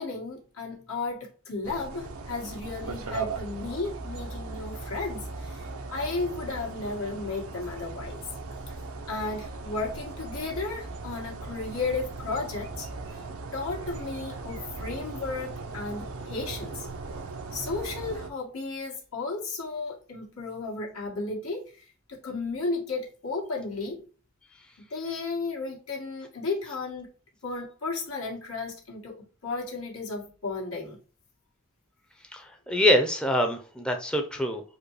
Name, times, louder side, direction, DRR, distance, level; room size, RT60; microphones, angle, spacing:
voice 1, 0.0-8.2 9.1-13.2 13.5-16.9 17.5-24.0 24.9-27.1 27.4-31.0, left 3 dB, 85° left, 2.0 m, -34 dB
sound 1, 1.6-18.3, right 3 dB, 90° right, 0.7 m, -38 dB
voice 2, 32.3-34.6, left 1 dB, 5° left, 0.5 m, -25 dB
4.9 x 2.3 x 4.7 m
head